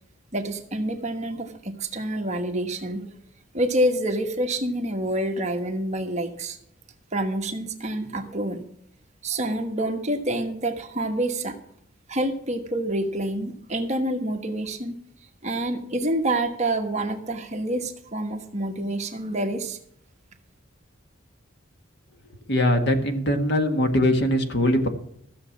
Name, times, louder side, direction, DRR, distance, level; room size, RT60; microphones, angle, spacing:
voice 1, 0.3-3.1 3.5-6.6 7.1-8.6 9.2-11.6 12.1-14.9 15.4-19.8, right 1 dB, 35° right, 4 dB, 1.3 m, -27 dB
voice 2, 22.5-24.9, left 1 dB, 55° left, 6 dB, 1.7 m, -21 dB
14.5 x 7.1 x 7.2 m, 0.69 s
head